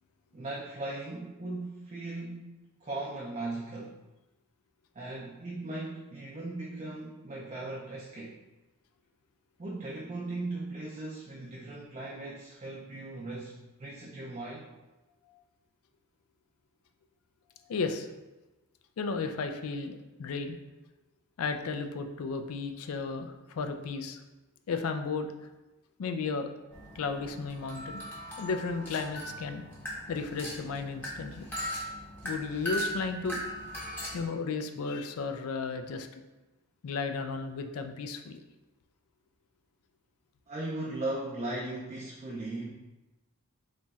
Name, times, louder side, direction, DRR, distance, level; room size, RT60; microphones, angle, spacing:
voice 1, 0.3-2.5 2.8-4.0 4.9-8.4 9.6-14.7 40.5-42.7, right 2 dB, 30° right, -3 dB, 0.4 m, -38 dB
voice 2, 17.7-18.1 19.0-20.6 21.4-24.2 24.7-25.3 26.0-26.5 27.0-28.0 28.4-29.6 30.1-31.5 32.2-33.4 34.1-36.2 36.8-38.4, left 4 dB, 75° left, 7 dB, 0.3 m, -34 dB
sound 1, 26.7-34.2, equal, 10° left, 0.7 m, -39 dB
4.0 x 3.0 x 2.3 m, 1.1 s
head